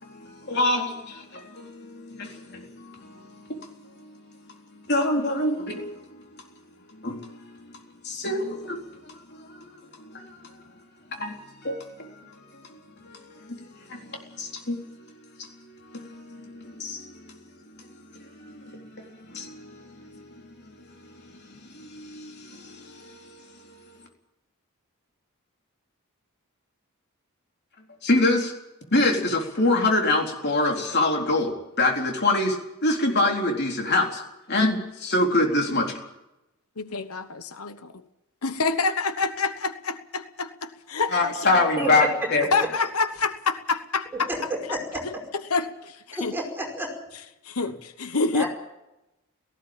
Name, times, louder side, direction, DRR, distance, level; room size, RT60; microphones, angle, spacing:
voice 1, 0.0-6.4 6.9-7.7 8.0-10.6 11.1-15.0 15.4-17.4 17.6-23.8 28.0-28.5 28.9-32.6 32.8-34.2 34.5-36.0 41.1-42.5, left 2 dB, 50° left, 3.9 m, -27 dB
voice 2, 36.8-38.0 38.4-41.6 42.5-44.3 45.5-45.7 46.2-46.3 47.4-48.5, left 4 dB, 80° left, 1.2 m, -27 dB
voice 3, 41.8-42.1 44.1-45.0 46.2-46.9 48.3-48.5, right 1 dB, 10° right, 5.2 m, -30 dB
18.5 x 15.5 x 9.0 m
head